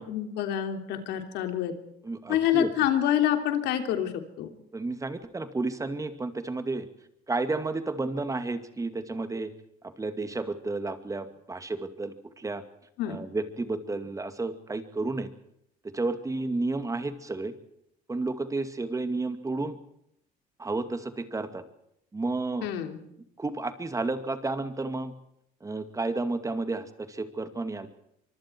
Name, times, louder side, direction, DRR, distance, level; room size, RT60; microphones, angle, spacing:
voice 1, 0.0-1.7 2.3-4.5 13.0-13.2 22.6-23.0, left 10 dB, 85° left, 6 dB, 3.2 m, -27 dB
voice 2, 2.0-2.7 4.7-6.9 7.3-9.5 10.0-12.6 13.1-15.3 15.9-17.5 18.1-19.8 20.6-21.6 22.1-22.7 23.4-25.1 25.6-27.9, right 3 dB, 20° right, 9 dB, 2.4 m, -31 dB
24.5 x 24.0 x 4.6 m, 0.76 s
cardioid pair, 110°, 17 cm